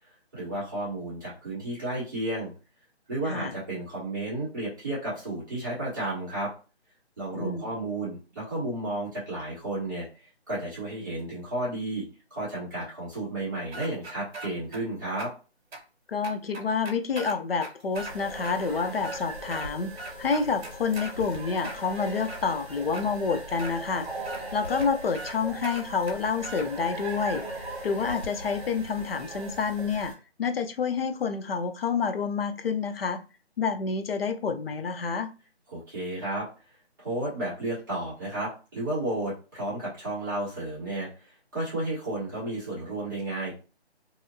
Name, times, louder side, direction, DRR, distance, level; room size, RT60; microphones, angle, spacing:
voice 1, 0.3-2.5 3.1-6.5 7.2-10.1 10.5-12.0 12.3-15.3 35.7-36.5 37.0-43.5, right 1 dB, 20° right, -10 dB, 1.1 m, -32 dB
voice 2, 7.3-7.7 16.1-19.9 20.2-24.1 24.5-27.4 27.8-30.1 30.4-33.2 33.6-35.3, left 5 dB, 60° left, 8 dB, 0.5 m, -28 dB
sound 1, 13.7-14.8 15.2-15.3 15.7-15.8 16.2-18.1 18.4-18.6 18.9-19.7 20.0-21.1 21.6-22.4 22.9-23.0 23.6-23.7 24.2-24.4 24.8-24.9 25.1-25.4 25.6-26.7, right 2 dB, 65° right, 0.7 m, -39 dB
sound 2, 17.9-30.1, right 1 dB, 50° right, 1.2 m, -39 dB
2.7 x 2.3 x 2.6 m, 0.34 s
hypercardioid pair, 170°, 33 cm